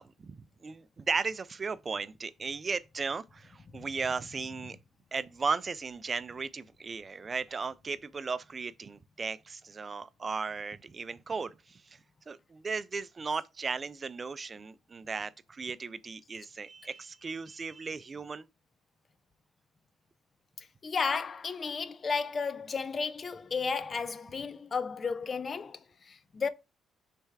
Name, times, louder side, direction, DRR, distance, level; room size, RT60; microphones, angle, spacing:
voice 1, 0.0-4.8 5.1-12.0 12.3-18.5, right 4 dB, 35° right, 0.3 m, -36 dB
voice 2, 20.6-26.5, left 5 dB, 40° left, 0.4 m, -33 dB
3.4 x 3.3 x 4.6 m
cardioid pair, 90°, 0 cm